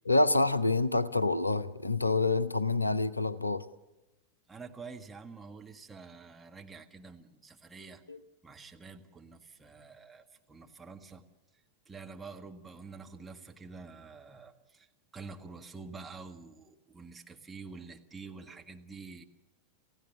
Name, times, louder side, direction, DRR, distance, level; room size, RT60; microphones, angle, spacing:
voice 1, 0.1-3.6 8.1-8.2, left 2 dB, 85° left, 0.7 m, -27 dB
voice 2, 4.5-8.0 8.4-11.2 11.9-14.9 15.1-19.2, right 4 dB, 10° right, 1.7 m, -48 dB
28.0 x 16.0 x 7.3 m
figure-of-eight pair, 90°, 0 cm